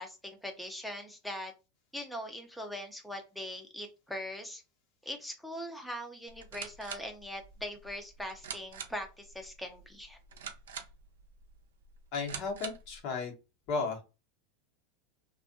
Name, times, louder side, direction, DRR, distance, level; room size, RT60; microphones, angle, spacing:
voice 1, 0.0-1.5 1.9-4.6 5.0-10.2, left 1 dB, ahead, 3 dB, 0.6 m, -41 dB
sound 1, 6.3-13.0, right 7 dB, 85° right, 0.5 m, -46 dB
voice 2, 12.1-13.3 13.7-14.0, left 4 dB, 55° left, 2 dB, 1.0 m, -34 dB
2.5 x 2.3 x 2.5 m, 0.28 s
hypercardioid pair, 105°, 0 cm